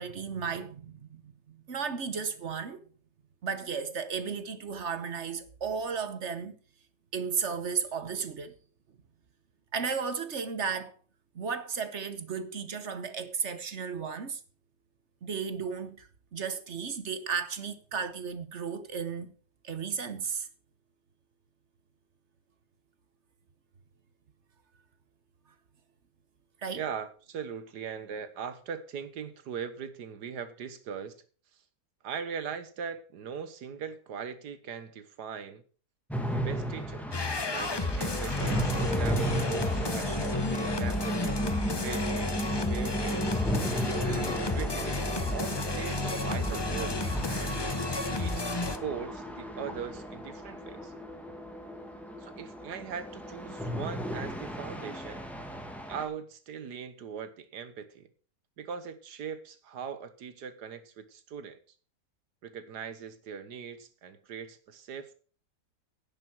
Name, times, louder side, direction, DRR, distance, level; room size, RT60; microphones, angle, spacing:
voice 1, 0.0-2.9 3.4-6.6 7.1-8.6 9.7-10.9 11.3-14.4 15.2-19.3 19.6-20.5 26.6-26.8, right 6 dB, 50° right, 1.2 m, -34 dB
voice 2, 26.8-31.2 32.0-35.6 36.3-37.1 37.5-43.4 44.0-47.7 48.2-50.9 52.2-55.3 55.9-58.1 58.6-61.6 62.4-65.1, right 7 dB, 85° right, 1.8 m, -40 dB
sound 1, 36.1-56.0, equal, ahead, 1.6 m, -35 dB
sound 2, 37.1-48.8, left 2 dB, 25° left, 0.6 m, -32 dB
11.0 x 7.6 x 6.1 m
omnidirectional pair, 1.7 m